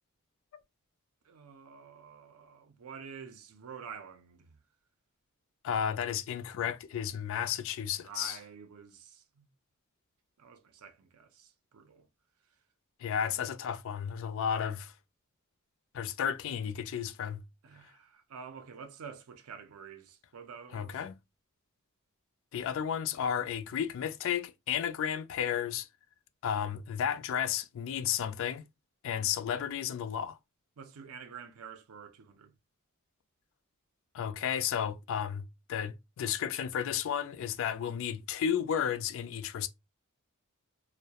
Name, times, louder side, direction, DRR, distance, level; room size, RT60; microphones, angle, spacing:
voice 1, 1.2-4.6 8.0-9.5 10.4-12.1 17.6-21.0 30.8-32.5, right 6 dB, 85° right, 0.5 m, -48 dB
voice 2, 5.6-8.4 13.0-14.9 15.9-17.4 20.7-21.1 22.5-25.9 26.4-28.6 29.0-30.4 34.1-39.7, left 8 dB, 65° left, 0.3 m, -33 dB
2.2 x 2.0 x 2.7 m
head